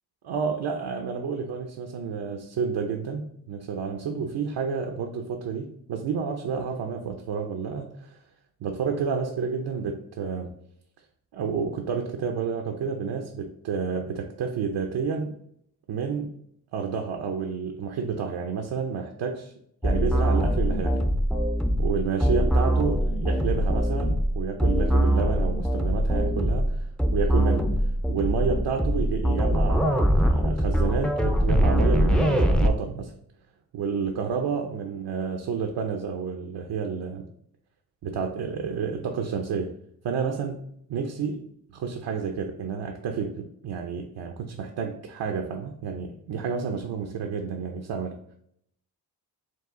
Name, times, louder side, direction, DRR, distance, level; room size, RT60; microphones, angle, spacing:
voice 1, 0.2-8.2 8.6-10.5 11.3-15.4 15.9-16.4 16.7-19.5 19.8-21.0 21.8-26.9 27.1-27.7 28.1-33.1 33.7-37.2 38.0-39.7 40.0-40.6 40.9-41.5 41.7-48.1, right 6 dB, 70° right, 3 dB, 0.6 m, -30 dB
sound 1, 19.8-32.7, equal, ahead, 0.4 m, -23 dB
4.7 x 2.4 x 3.6 m, 0.70 s
cardioid pair, 65°, 41 cm